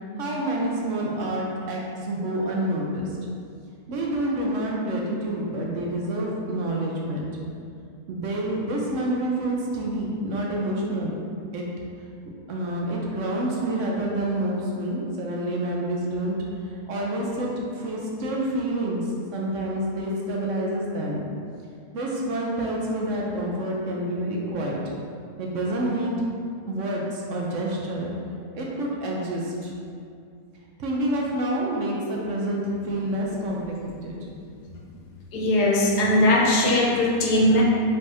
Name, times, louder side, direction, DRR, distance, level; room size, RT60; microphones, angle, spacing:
voice 1, 0.2-3.2 3.9-7.3 8.1-11.2 11.5-11.7 12.5-16.4 16.6-21.2 21.9-24.8 25.4-26.2 26.6-28.1 28.5-29.7 30.8-34.2, right 1 dB, 65° right, -2 dB, 0.8 m, -28 dB
voice 2, 35.3-37.6, left 1 dB, 85° left, -2 dB, 1.3 m, -20 dB
5.0 x 3.3 x 2.7 m, 2.3 s
omnidirectional pair, 1.7 m